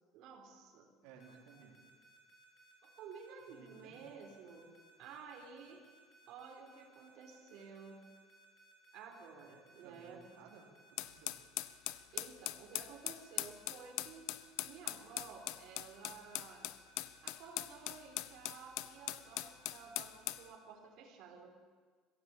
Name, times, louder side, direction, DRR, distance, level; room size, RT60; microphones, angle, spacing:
voice 1, 0.1-0.9 3.0-4.6 5.0-5.8 6.3-8.0 8.9-10.2 12.1-14.3 14.6-16.7 17.2-21.6, right 5 dB, 55° right, 0 dB, 3.9 m, -53 dB
voice 2, 1.0-1.8 3.5-4.1 9.7-11.4, right 6 dB, 80° right, -1 dB, 3.7 m, -59 dB
sound 1, 1.2-20.5, right 1 dB, 35° left, 5.5 m, -64 dB
sound 2, 11.0-20.5, left 16 dB, 65° left, 0.7 m, -41 dB
24.0 x 16.0 x 7.3 m, 1.6 s
cardioid pair, 165°, 0 cm